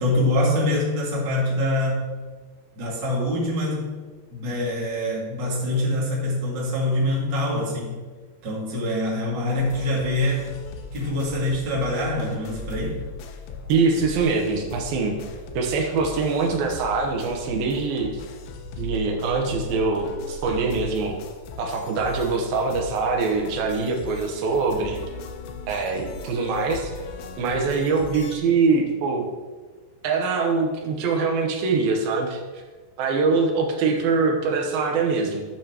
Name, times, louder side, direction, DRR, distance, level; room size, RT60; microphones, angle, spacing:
voice 1, 0.0-2.1 2.8-3.9 4.3-8.0 8.4-10.5 10.9-13.0, left 1 dB, 35° right, -5 dB, 2.3 m, -24 dB
sound 1, 9.6-28.4, left 3 dB, 80° left, 2.9 m, -38 dB
voice 2, 13.7-15.2 15.5-18.2 18.8-21.2 21.6-25.0 25.7-26.9 27.4-29.2 30.0-32.6 33.0-35.4, right 4 dB, 70° right, 2 dB, 2.5 m, -23 dB
12.0 x 8.9 x 3.0 m, 1.4 s
omnidirectional pair, 5.1 m